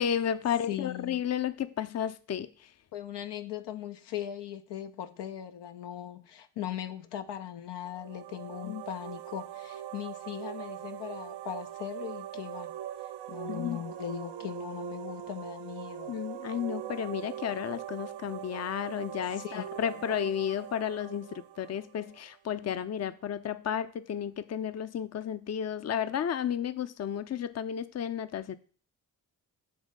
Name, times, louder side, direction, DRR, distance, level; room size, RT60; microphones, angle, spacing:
voice 1, 0.0-2.5 8.6-8.8 13.5-13.8 16.1-28.6, left 9 dB, 40° left, 0.5 m, -32 dB
voice 2, 0.7-1.2 2.9-12.8 13.3-16.1 19.3-20.0, left 11 dB, 80° left, 0.6 m, -39 dB
sound 1, 7.8-22.5, right 12 dB, 75° right, 0.6 m, -42 dB
8.2 x 3.2 x 5.2 m
supercardioid pair, 45°, 41 cm